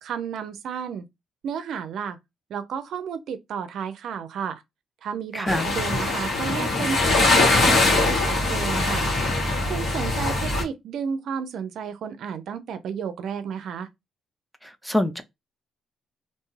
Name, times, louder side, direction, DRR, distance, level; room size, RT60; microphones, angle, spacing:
voice 1, 0.0-1.1 1.4-2.2 2.5-4.6 5.0-9.1 9.7-13.9, right 7 dB, 70° right, 0.4 m, -32 dB
voice 2, 5.3-5.7 14.6-15.2, left 1 dB, ahead, 0.5 m, -25 dB
sound 1, 5.5-10.6, left 2 dB, 60° left, 1.3 m, -22 dB
2.6 x 2.3 x 3.1 m
cardioid pair, 90°, 0 cm